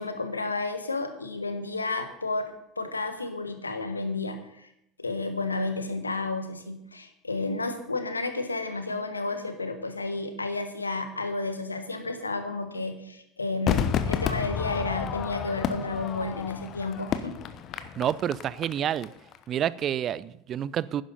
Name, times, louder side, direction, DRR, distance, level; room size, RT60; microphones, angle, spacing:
voice 1, 0.0-4.7 5.0-17.4, left 3 dB, 85° left, 8 dB, 1.3 m, -31 dB
Crowd / Fireworks, 13.7-19.0 19.3-19.4, left 8 dB, 40° left, 1.0 m, -30 dB
voice 2, 18.0-19.1 19.5-21.0, right 10 dB, 40° right, 19 dB, 0.5 m, -28 dB
11.0 x 10.5 x 5.6 m, 0.79 s
figure-of-eight pair, 70°, 0 cm